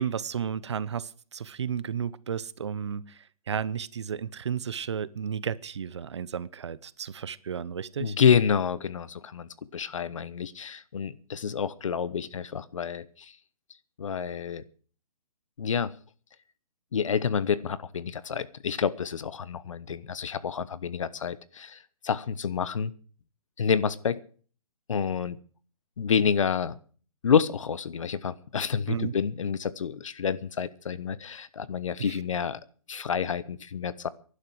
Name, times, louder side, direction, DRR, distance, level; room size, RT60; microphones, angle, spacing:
voice 1, 0.0-8.2 28.9-29.1 32.0-32.1, right 7 dB, 50° right, 0.7 m, -33 dB
voice 2, 8.0-13.3 14.0-14.6 15.6-15.9 16.9-22.9 23.6-24.2 24.9-25.4 26.0-26.8 27.2-32.6 32.9-34.1, left 7 dB, 60° left, 1.0 m, -28 dB
18.0 x 11.5 x 4.8 m
hypercardioid pair, 175°, 18 cm